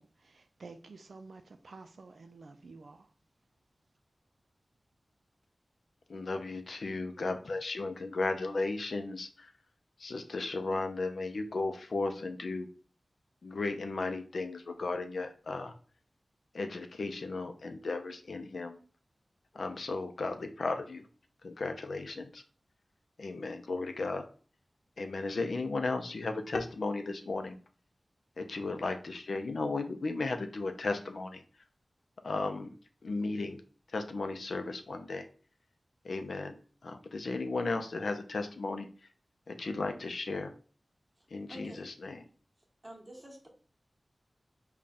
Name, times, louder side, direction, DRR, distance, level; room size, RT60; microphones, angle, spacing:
voice 1, 0.0-3.1, right 3 dB, 80° right, 0.3 m, -51 dB
voice 2, 6.1-9.5 10.0-12.7 13.4-15.7 16.5-18.8 19.5-21.0 21.4-22.4 23.2-24.2 25.0-27.6 28.4-31.4 32.2-32.7 33.0-33.6 33.9-35.2 36.0-36.5 36.8-38.9 39.5-40.5 41.3-42.2, left 3 dB, 85° left, 0.4 m, -35 dB
voice 3, 41.5-41.8 42.8-43.5, right 1 dB, 25° right, 1.1 m, -48 dB
4.0 x 2.2 x 3.4 m
wide cardioid pair, 60°, 0 cm